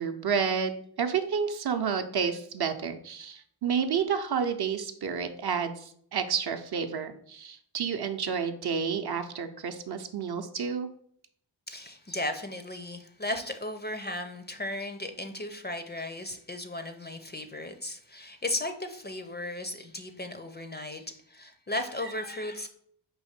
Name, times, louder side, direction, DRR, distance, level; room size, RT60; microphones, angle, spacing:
voice 1, 0.0-10.9, right 6 dB, 55° right, 7 dB, 0.6 m, -30 dB
voice 2, 11.7-22.7, left 1 dB, 25° left, 7 dB, 0.5 m, -36 dB
4.8 x 2.6 x 4.2 m, 0.64 s
cardioid pair, 50°, 47 cm